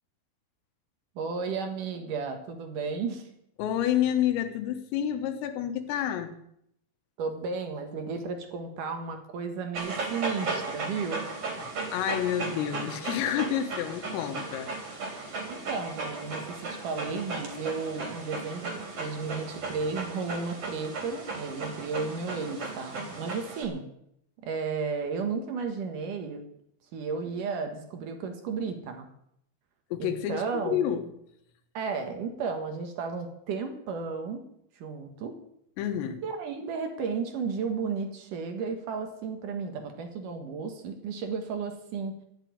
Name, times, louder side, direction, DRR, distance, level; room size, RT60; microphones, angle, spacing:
voice 1, 1.2-3.3 7.2-11.3 15.5-23.9 24.4-26.4 26.9-29.1 30.0-30.8 31.7-34.4 34.8-35.4 36.2-42.1, right 5 dB, 70° right, 6 dB, 2.0 m, -33 dB
voice 2, 3.6-6.3 11.6-14.7 29.9-31.1 35.8-36.2, left 10 dB, 90° left, 7 dB, 4.0 m, -29 dB
Dog, 9.7-23.6, right 3 dB, 35° right, 3.6 m, -36 dB
13.5 x 8.3 x 9.4 m, 0.75 s
omnidirectional pair, 5.8 m